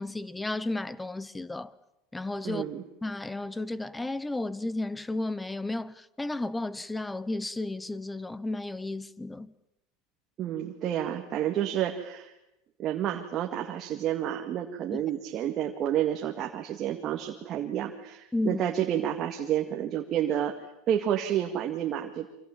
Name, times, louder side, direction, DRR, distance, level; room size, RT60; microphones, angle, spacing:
voice 1, 0.0-1.7 2.1-2.6 3.0-9.5 14.9-15.0 18.3-18.6, left 2 dB, 5° left, 0.9 m, -33 dB
voice 2, 2.4-2.8 10.4-12.3 12.8-20.6 20.9-22.3, right 10 dB, 35° right, 2.1 m, -30 dB
28.0 x 25.5 x 7.3 m
supercardioid pair, 150°, 0 cm